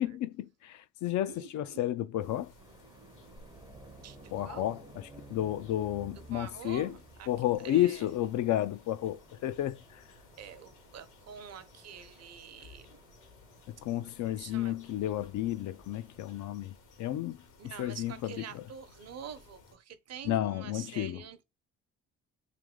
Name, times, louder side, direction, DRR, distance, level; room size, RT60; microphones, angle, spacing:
voice 1, 0.0-2.5 4.3-7.0 7.3-10.0 13.7-18.6 20.2-21.2, left 13 dB, 70° left, 0.5 m, -32 dB
voice 2, 1.3-1.8 4.0-4.7 6.3-7.3 7.6-8.0 10.4-13.0 14.4-14.7 17.6-21.4, right 7 dB, 60° right, 0.8 m, -46 dB
sound 1, 2.2-19.8, left 3 dB, 90° left, 1.4 m, -58 dB
sound 2, 2.6-16.6, right 2 dB, 15° right, 0.5 m, -56 dB
3.4 x 3.1 x 3.6 m
cardioid pair, 90°, 30 cm